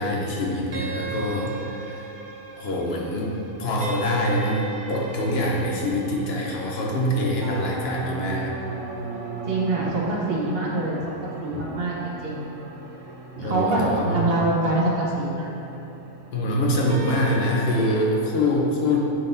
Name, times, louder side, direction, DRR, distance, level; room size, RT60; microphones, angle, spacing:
voice 1, 0.0-2.1 2.6-8.5 13.4-14.2 16.3-19.0, left 1 dB, 50° left, -2 dB, 1.0 m, -24 dB
sound 1, 0.7-18.0, right 3 dB, 90° right, 1.2 m, -37 dB
voice 2, 9.4-12.4 13.4-15.5, right 2 dB, 45° right, -4 dB, 1.2 m, -25 dB
10.5 x 3.8 x 2.7 m, 2.9 s
omnidirectional pair, 1.5 m